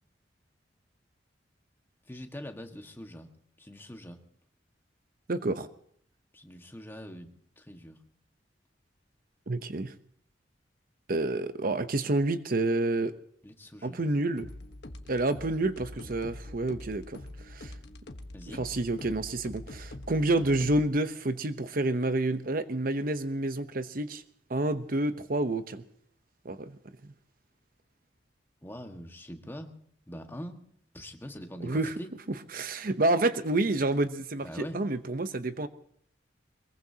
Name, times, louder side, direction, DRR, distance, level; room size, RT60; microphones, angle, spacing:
voice 1, 2.1-3.3 3.6-4.2 6.3-8.0 13.4-14.0 18.3-18.7 28.6-29.7 30.1-30.6 30.9-32.1 34.4-34.8, equal, 10° left, 4 dB, 1.6 m, -43 dB
voice 2, 5.3-5.7 9.5-9.9 11.1-13.1 13.8-14.5 15.1-17.7 18.5-24.2 24.5-25.8 26.4-26.8 31.6-31.9 32.5-35.7, right 2 dB, 50° right, 10 dB, 0.8 m, -29 dB
sound 1, 14.4-20.8, left 1 dB, 65° left, 1.3 m, -44 dB
23.0 x 21.5 x 2.9 m, 0.64 s
head